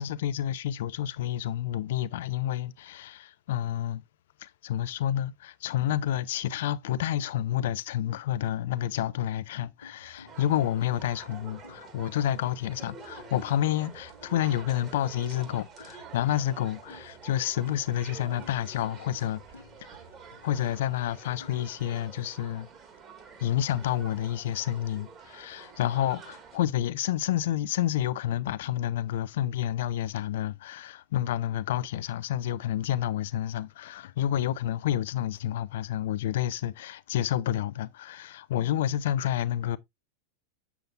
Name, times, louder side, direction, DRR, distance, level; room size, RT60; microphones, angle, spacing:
voice 1, 0.0-4.0 4.4-19.4 20.4-22.7 23.4-39.8, left 12 dB, 55° left, 0.5 m, -29 dB
sound 1, 9.8-21.8, left 3 dB, 75° left, 1.1 m, -54 dB
Chinese speaking crowd, 10.3-26.6, right 6 dB, 30° right, 1.8 m, -48 dB
7.7 x 7.0 x 2.4 m
figure-of-eight pair, 90°, 0 cm